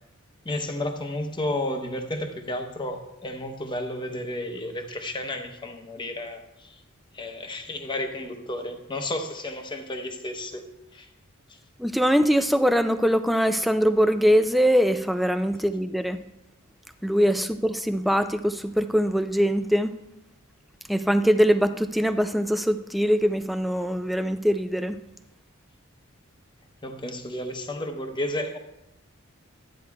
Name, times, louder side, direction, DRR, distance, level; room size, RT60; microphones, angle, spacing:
voice 1, 0.4-6.7 7.1-10.6 10.9-11.1 26.8-28.6, left 1 dB, 20° left, 5 dB, 0.8 m, -32 dB
voice 2, 11.8-16.2 17.0-20.0 20.9-25.0, equal, ahead, 9 dB, 0.3 m, -22 dB
12.0 x 9.2 x 2.3 m, 0.90 s
head